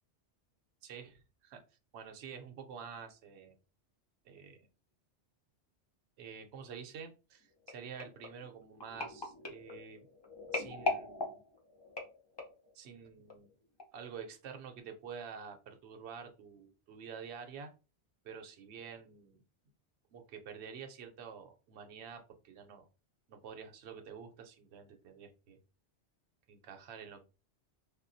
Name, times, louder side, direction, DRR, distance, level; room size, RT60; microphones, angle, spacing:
voice 1, 0.8-3.5 4.2-4.7 6.2-10.1 10.5-11.4 12.7-13.5 13.9-17.7 18.2-19.4 20.1-22.9 23.3-25.6 26.5-27.2, right 6 dB, 70° right, 5 dB, 0.8 m, -48 dB
sound 1, 7.7-12.7 13.3-13.5 13.8-13.9, left 2 dB, 30° left, 0.5 m, -40 dB
3.6 x 2.2 x 2.5 m, 0.32 s
omnidirectional pair, 1.2 m